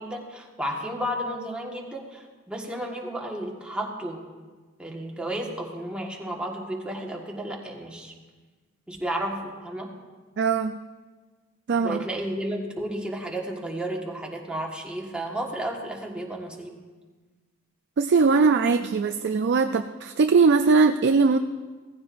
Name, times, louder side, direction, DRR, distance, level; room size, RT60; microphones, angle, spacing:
voice 1, 0.0-4.2 4.8-8.1 8.9-9.9 11.7-16.7, right 1 dB, 5° right, -1 dB, 1.5 m, -32 dB
voice 2, 10.4-10.8 11.7-12.0 18.0-21.4, right 4 dB, 55° right, 7 dB, 0.4 m, -20 dB
17.0 x 15.0 x 2.6 m, 1.4 s
head